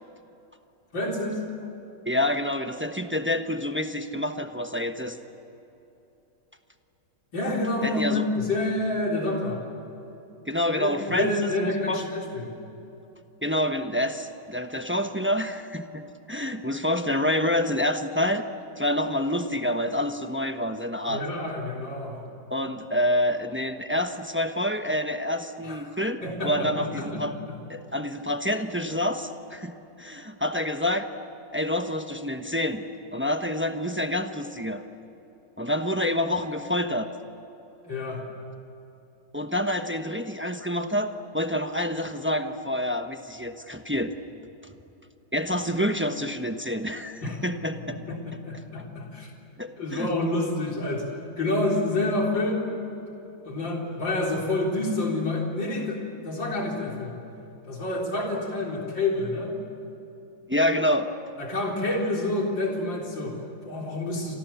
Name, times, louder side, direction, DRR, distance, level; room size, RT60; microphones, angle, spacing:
voice 1, 0.9-1.4 7.3-9.6 10.7-12.5 21.1-22.2 25.6-27.6 37.8-38.2 47.2-47.4 47.9-49.3 49.8-51.1 51.4-52.7 53.4-57.2 57.7-59.6 61.4-64.4, left 2 dB, 75° left, -1 dB, 4.4 m, -28 dB
voice 2, 2.1-5.2 7.8-8.2 10.5-12.0 13.4-18.4 18.8-21.2 22.5-27.3 27.7-31.1 31.5-32.8 33.1-34.8 35.6-37.1 39.3-44.1 45.3-48.0 49.6-50.1 60.5-61.1, left 1 dB, 10° right, 6 dB, 0.8 m, -27 dB
29.5 x 26.5 x 7.1 m, 3.0 s
omnidirectional pair, 2.1 m